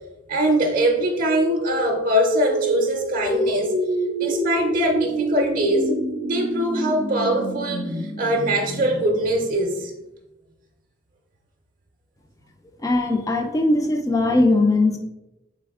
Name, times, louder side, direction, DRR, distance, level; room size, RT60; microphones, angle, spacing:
voice 1, 0.3-3.7 4.2-6.0 6.2-9.9, right 1 dB, 45° right, 2 dB, 0.5 m, -22 dB
sound 1, 0.9-9.8, equal, 50° left, 1.0 m, -27 dB
voice 2, 12.8-15.0, left 2 dB, 15° left, 5 dB, 0.4 m, -19 dB
4.1 x 3.3 x 3.4 m, 0.96 s
head